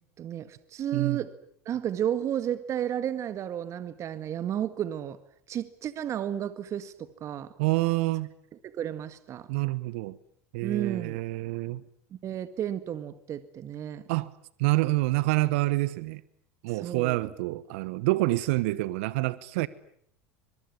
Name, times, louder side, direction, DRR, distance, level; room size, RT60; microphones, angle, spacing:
voice 1, 0.2-1.3 1.7-5.2 5.5-7.5 8.6-9.5 10.6-11.2 12.2-14.0 16.7-17.3, right 10 dB, 45° right, 1.7 m, -32 dB
voice 2, 7.6-8.3 9.5-10.2 10.5-11.8 14.1-14.3 14.6-16.2 16.6-19.7, right 20 dB, 70° right, 1.1 m, -27 dB
25.0 x 22.5 x 9.7 m
hypercardioid pair, 90°, 7 cm